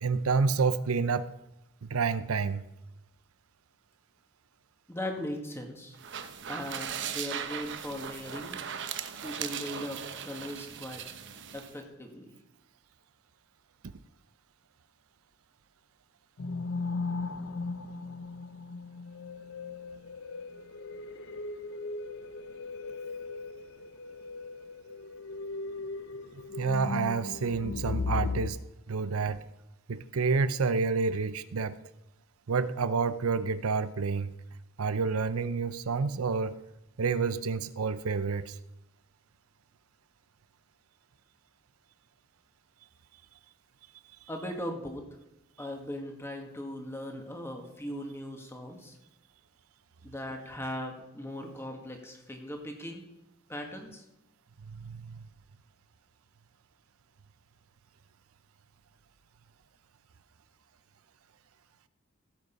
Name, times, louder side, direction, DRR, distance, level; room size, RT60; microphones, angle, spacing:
voice 1, 0.0-1.3 1.8-2.6 26.6-28.6 28.9-29.4 29.9-31.8 32.5-34.3 34.8-36.6 37.0-38.6 54.6-55.2, right 4 dB, 80° right, 14 dB, 0.6 m, -29 dB
voice 2, 4.9-6.0 6.5-8.6 9.2-11.1 11.5-12.3 44.3-45.0 45.6-49.0 50.0-53.0 53.5-54.0, left 1 dB, 10° left, 2 dB, 1.9 m, -39 dB
sound 1, 5.9-11.7, right 8 dB, 60° right, 1.0 m, -38 dB
sound 2, 16.4-28.5, left 3 dB, 65° left, 0.7 m, -37 dB
16.0 x 8.2 x 5.4 m, 0.90 s
head